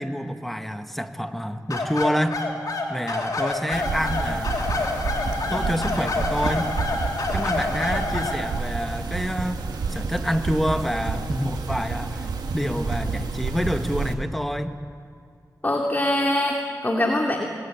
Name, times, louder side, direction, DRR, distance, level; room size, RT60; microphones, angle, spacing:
voice 1, 0.0-2.4 2.9-4.7 5.5-6.8 7.3-9.6 9.9-12.3 12.5-14.8, equal, 5° left, 7 dB, 1.8 m, -27 dB
sound 1, 1.7-8.4, left 3 dB, 60° left, 3.6 m, -27 dB
sound 2, 3.7-14.1, right 4 dB, 85° right, 2.2 m, -29 dB
voice 2, 15.6-17.4, left 1 dB, 25° left, 1 dB, 2.7 m, -23 dB
27.5 x 20.5 x 8.8 m, 2.3 s
cardioid pair, 50°, 7 cm